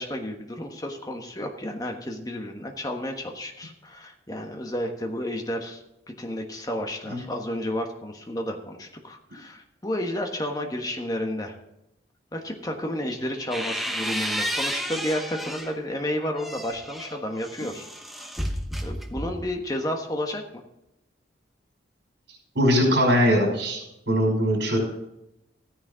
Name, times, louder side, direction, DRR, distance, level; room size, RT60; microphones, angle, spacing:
voice 1, 0.0-5.8 6.1-11.6 12.3-17.9 18.2-18.3 18.8-20.4, left 1 dB, 20° left, 3 dB, 1.3 m, -31 dB
sound 1, 13.1-15.8 16.2-19.6, equal, ahead, 0.8 m, -32 dB
voice 2, 22.6-24.8, equal, 70° right, 0 dB, 5.4 m, -21 dB
14.0 x 9.8 x 4.0 m, 0.87 s
head